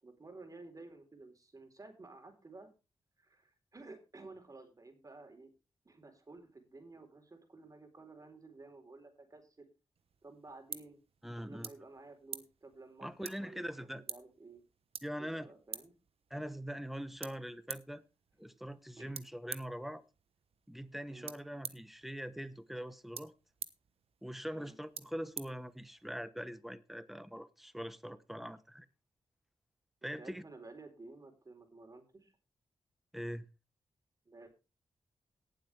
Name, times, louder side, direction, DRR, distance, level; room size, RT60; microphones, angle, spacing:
voice 1, 0.0-2.7 3.2-5.5 5.8-9.7 10.2-11.0 11.4-14.6 15.2-15.9 18.4-18.5 19.0-19.2 21.1-21.3 24.5-24.8 30.0-32.3 34.3-34.5, right 3 dB, 35° right, 4.1 m, -53 dB
sound 1, 10.0-26.2, right 7 dB, 70° right, 1.1 m, -50 dB
voice 2, 11.2-11.7 13.0-14.0 15.0-15.5 16.3-18.0 18.4-20.0 20.7-23.3 24.2-28.9 30.0-30.4 33.1-33.4, equal, ahead, 1.1 m, -42 dB
18.0 x 7.7 x 3.4 m
cardioid pair, 70°, 10 cm